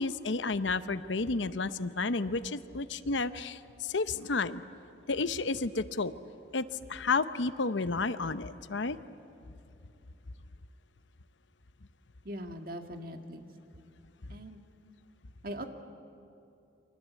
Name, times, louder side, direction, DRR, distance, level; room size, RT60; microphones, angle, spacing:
voice 1, 0.0-4.6 5.1-6.2 6.5-9.0, left 3 dB, 80° left, 13 dB, 0.8 m, -31 dB
voice 2, 12.3-13.6 14.3-14.6 15.4-15.7, equal, 50° right, 5 dB, 1.9 m, -41 dB
29.5 x 24.0 x 8.4 m, 2.8 s
head